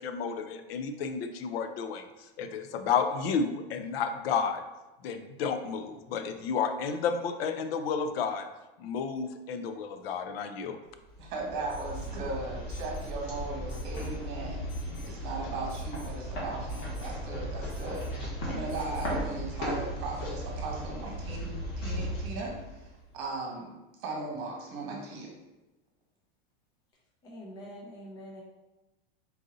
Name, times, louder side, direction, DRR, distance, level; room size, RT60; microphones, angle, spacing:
voice 1, 0.0-2.0 2.4-4.6 5.0-8.5 8.8-10.8, left 6 dB, 70° left, 8 dB, 0.5 m, -31 dB
sound 1, 11.1-23.1, equal, 40° left, 1.2 m, -36 dB
voice 2, 11.2-22.9 23.1-23.7 24.0-25.3, right 3 dB, 40° right, -1 dB, 1.3 m, -38 dB
Alarm, 11.7-12.2 12.7-13.2 13.7-14.2 14.7-15.2 15.7-16.2 16.7-17.1 17.7-18.1 18.7-19.1, left 2 dB, 55° left, 1.4 m, -54 dB
voice 3, 27.2-28.4, equal, 15° left, -2 dB, 0.4 m, -45 dB
4.0 x 2.7 x 3.8 m, 1.0 s
supercardioid pair, 175°, 30 cm